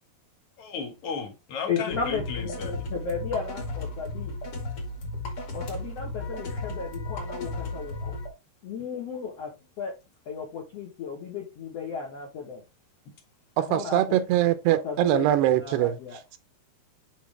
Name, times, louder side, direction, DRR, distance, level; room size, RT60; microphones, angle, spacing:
voice 1, 0.6-2.8, left 5 dB, 80° left, 1.3 m, -35 dB
voice 2, 1.7-4.3 5.5-8.2 8.6-9.5 9.8-9.9 10.2-12.6 13.6-14.2 14.7-15.3 15.5-16.2, left 6 dB, 60° left, 1.7 m, -34 dB
sound 1, 1.9-8.3, left 2 dB, 40° left, 2.2 m, -35 dB
voice 3, 13.6-16.0, right 13 dB, 80° right, 2.8 m, -23 dB
9.5 x 4.0 x 3.4 m
omnidirectional pair, 4.8 m